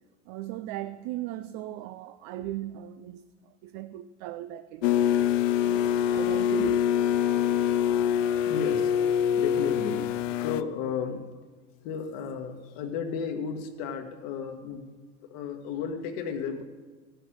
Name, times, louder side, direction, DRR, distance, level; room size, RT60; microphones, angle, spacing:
voice 1, 0.3-6.8, right 13 dB, 55° right, 0.6 m, -38 dB
sound 1, 4.8-10.6, left 9 dB, 80° left, 0.6 m, -25 dB
voice 2, 8.4-9.0 9.4-10.1 10.4-11.2 11.8-14.9 15.2-16.6, left 6 dB, 60° left, 1.6 m, -34 dB
15.5 x 6.7 x 6.4 m
hypercardioid pair, 85°, 37 cm